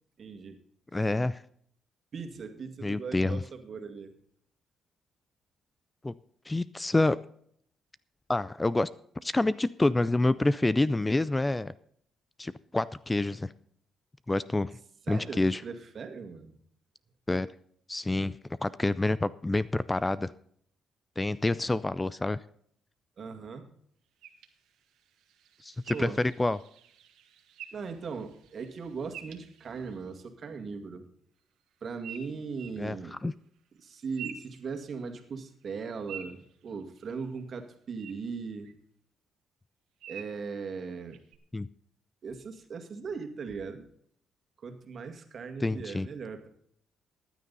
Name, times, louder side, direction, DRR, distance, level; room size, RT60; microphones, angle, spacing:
voice 1, 0.2-0.6 2.1-4.1 15.1-16.6 23.2-23.7 25.9-26.2 27.7-31.0 31.8-33.1 33.8-38.7 40.1-41.2 42.2-43.9 44.6-46.5, right 5 dB, 50° right, 6 dB, 2.0 m, -39 dB
voice 2, 0.9-1.4 2.8-3.4 6.0-6.1 6.5-7.2 8.3-8.9 9.2-11.7 12.4-13.5 14.3-14.7 15.1-15.6 17.3-17.5 17.9-18.4 18.6-20.3 21.2-22.4 25.6-26.6 32.8-33.0 33.2-33.3 41.5-41.7 45.6-46.1, left 2 dB, 15° left, 17 dB, 0.4 m, -27 dB
sound 1, 24.2-30.1 32.0-32.8 33.8-35.3 35.6-37.3 38.0-38.1 38.6-38.7 40.0-40.4 41.1-41.4, right 8 dB, 85° right, 1.3 m, -48 dB
15.0 x 10.0 x 4.0 m, 0.65 s
cardioid pair, 90°, 0 cm